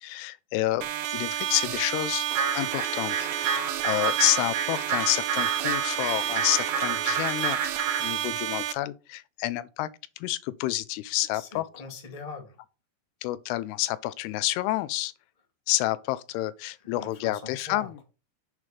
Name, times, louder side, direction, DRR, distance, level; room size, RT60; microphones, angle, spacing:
voice 1, 0.0-2.3 2.5-9.9 10.2-11.7 13.2-15.1 15.7-18.0, left 16 dB, 90° left, 2.6 m, -29 dB
sound 1, 0.8-8.7, right 12 dB, 85° right, 2.5 m, -31 dB
sound 2, 2.3-8.1, right 6 dB, 70° right, 2.5 m, -30 dB
voice 2, 11.3-12.6 17.0-18.0, left 4 dB, 60° left, 0.4 m, -42 dB
6.9 x 4.8 x 5.9 m
omnidirectional pair, 4.6 m